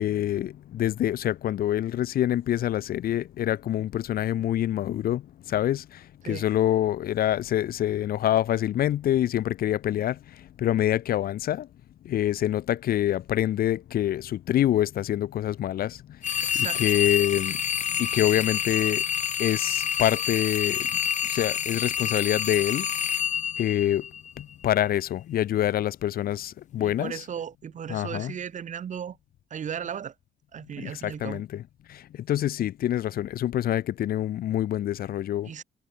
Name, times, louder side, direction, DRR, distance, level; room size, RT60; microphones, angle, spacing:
voice 1, 0.0-11.7 12.0-17.6 17.9-19.0 19.4-22.9 23.6-27.2 27.9-28.3 30.8-31.6 31.9-35.5, left 12 dB, 60° left, 2.5 m, -26 dB
sound 1, 16.2-24.4, left 8 dB, 45° left, 3.2 m, -28 dB
voice 2, 16.4-16.8 26.8-29.2 29.5-30.1 30.5-31.4 35.4-35.6, right 8 dB, 45° right, 8.0 m, -36 dB
cardioid pair, 110°, 17 cm